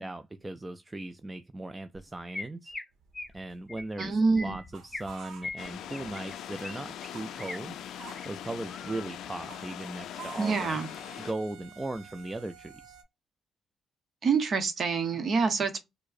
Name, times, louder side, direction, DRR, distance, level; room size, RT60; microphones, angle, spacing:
voice 1, 0.0-2.7 3.3-7.8 8.3-10.8 11.2-13.0, right 2 dB, 15° right, 0.3 m, -38 dB
Chirp tweet, 1.9-2.0 2.3-2.8 3.1-3.4 3.7-4.1 4.4-5.1 5.4-6.8 7.0-7.6 8.0-8.3 8.7-9.1, left 2 dB, 15° left, 0.9 m, -40 dB
sound 1, 3.0-6.2 6.5-13.0, right 7 dB, 85° right, 0.8 m, -50 dB
voice 2, 4.0-4.6 10.4-10.9 14.2-15.8, right 4 dB, 50° right, 0.8 m, -26 dB
sound 2, 5.6-11.3, left 10 dB, 80° left, 0.3 m, -41 dB
4.5 x 2.0 x 2.5 m
cardioid pair, 90°, 0 cm